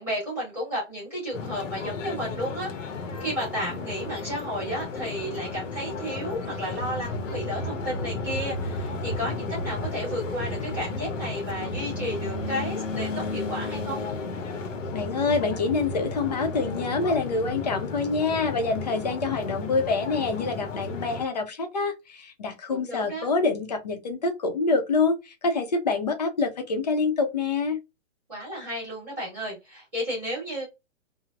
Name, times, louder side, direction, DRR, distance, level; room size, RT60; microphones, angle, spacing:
voice 1, 0.0-14.0 22.7-23.3 28.3-30.6, equal, 5° right, 1.2 m, -33 dB
sound 1, 1.3-21.2, left 3 dB, 75° left, 0.8 m, -33 dB
voice 2, 14.9-27.8, left 4 dB, 35° left, 0.6 m, -26 dB
3.3 x 2.0 x 2.3 m
hypercardioid pair, 175°, 38 cm